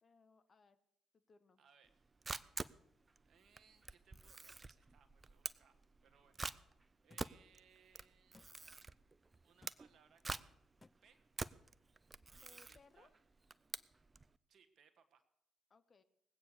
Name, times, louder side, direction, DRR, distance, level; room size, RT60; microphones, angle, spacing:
voice 1, 0.0-0.8 1.1-1.6 12.4-13.1 15.7-16.0, left 4 dB, 45° left, 10 dB, 1.2 m, -67 dB
voice 2, 1.6-2.1 3.2-6.4 7.0-8.4 9.4-10.5 11.0-11.2 12.4-13.2 14.5-15.2, right 7 dB, 60° right, 9 dB, 1.4 m, -70 dB
Camera, 1.9-14.3, right 3 dB, 30° right, 0.6 m, -48 dB
sound 1, 7.1-7.3 8.3-8.5 9.6-9.8 10.8-11.0, left 3 dB, 25° left, 0.4 m, -62 dB
19.0 x 8.5 x 6.8 m, 0.79 s
hypercardioid pair, 45°, 0 cm